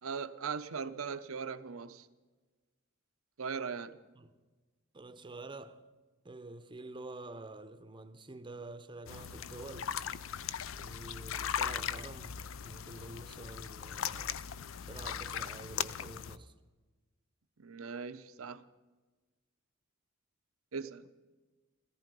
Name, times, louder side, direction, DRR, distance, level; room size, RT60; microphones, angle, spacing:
voice 1, 0.0-2.1 3.4-4.0 17.6-18.6 20.7-21.1, right 5 dB, 80° right, 0.7 m, -39 dB
voice 2, 4.9-5.9 6.2-10.0 10.7-14.5 14.9-16.5, right 2 dB, 25° right, 0.7 m, -48 dB
sound 1, 9.1-16.4, left 8 dB, 70° left, 0.5 m, -39 dB
17.5 x 14.5 x 5.3 m
head